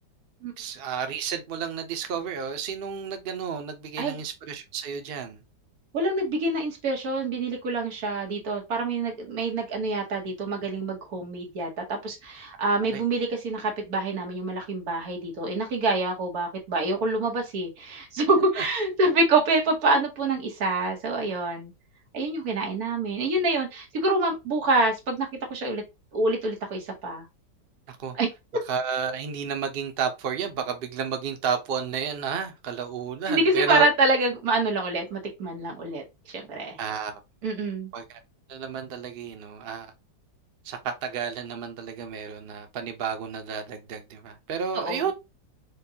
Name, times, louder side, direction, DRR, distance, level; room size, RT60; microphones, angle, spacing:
voice 1, 0.6-5.4 12.8-13.0 27.9-28.2 28.7-33.9 36.8-37.1 37.9-38.2 38.5-39.9 40.6-45.1, right 7 dB, 80° right, 0.5 m, -31 dB
voice 2, 5.9-21.7 22.1-25.8 26.1-27.3 28.1-28.3 33.3-36.8 37.4-37.9 44.7-45.1, right 2 dB, 60° right, 1.5 m, -26 dB
5.0 x 2.2 x 2.7 m
omnidirectional pair, 1.9 m